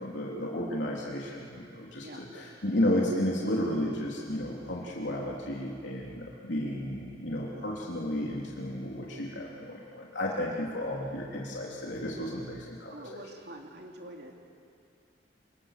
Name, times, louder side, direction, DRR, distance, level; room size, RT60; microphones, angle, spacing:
voice 1, 0.0-13.2, left 1 dB, 80° left, -4 dB, 3.4 m, -33 dB
voice 2, 12.9-14.3, right 1 dB, 60° right, 1 dB, 3.2 m, -45 dB
27.5 x 24.0 x 7.5 m, 2.5 s
head